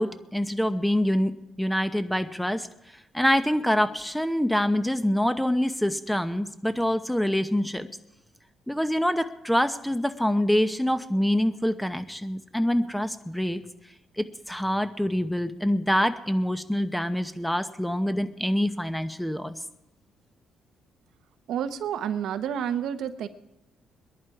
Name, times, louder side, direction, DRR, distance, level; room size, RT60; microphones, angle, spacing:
voice 1, 0.0-1.3 1.6-2.7 3.1-7.9 8.7-13.6 14.2-19.6, equal, 5° left, 10 dB, 0.9 m, -25 dB
voice 2, 21.5-23.3, right 9 dB, 75° right, 10 dB, 0.9 m, -29 dB
22.0 x 11.0 x 4.8 m, 0.94 s
cardioid pair, 90°, 0 cm